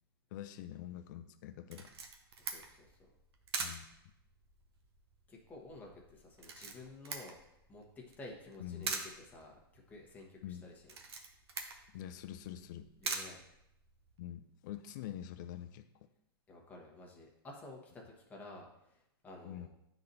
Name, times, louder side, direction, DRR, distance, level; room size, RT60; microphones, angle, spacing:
voice 1, 0.3-1.9 3.6-3.8 8.6-8.9 10.4-10.7 11.9-12.9 14.2-15.9 19.4-19.7, left 11 dB, 50° left, 9 dB, 0.4 m, -45 dB
Camera, 1.7-14.2, right 4 dB, 80° right, 0.9 m, -45 dB
voice 2, 2.4-2.9 5.3-7.4 7.7-11.0 13.0-13.4 16.5-19.7, left 2 dB, 10° left, -1 dB, 1.1 m, -52 dB
9.6 x 4.0 x 2.7 m, 0.82 s
hypercardioid pair, 145°, 13 cm